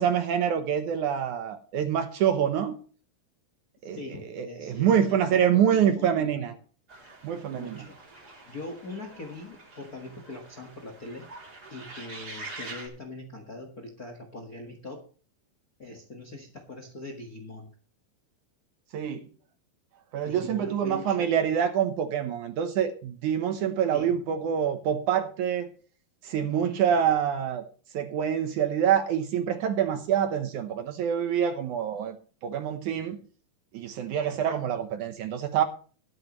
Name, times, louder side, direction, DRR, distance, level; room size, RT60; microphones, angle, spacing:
voice 1, 0.0-2.8 3.8-4.0 4.3-6.5 7.2-7.8 18.9-19.3 20.1-25.7 26.2-27.6 27.9-32.2 32.4-33.2 33.7-35.6, right 8 dB, 70° right, 2.1 m, -26 dB
voice 2, 3.8-6.4 7.5-8.0 8.5-11.2 11.7-15.0 15.8-17.7 20.2-21.3 23.9-24.4 26.4-26.8 34.3-34.6, left 2 dB, 45° left, 1.2 m, -42 dB
sound 1, 6.9-12.9, right 2 dB, 25° right, 3.3 m, -45 dB
21.5 x 8.0 x 3.1 m
omnidirectional pair, 4.2 m